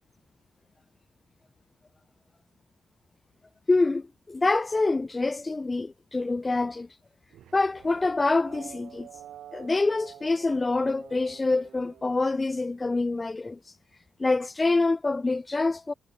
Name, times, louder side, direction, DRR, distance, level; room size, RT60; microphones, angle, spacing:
voice 1, 3.7-6.9 7.5-9.1 9.5-13.6 14.2-15.9, left 3 dB, 20° left, 1.1 m, -26 dB
sound 1, 7.3-12.8, right 11 dB, 75° right, 6.9 m, -49 dB
cardioid pair, 90°, 0 cm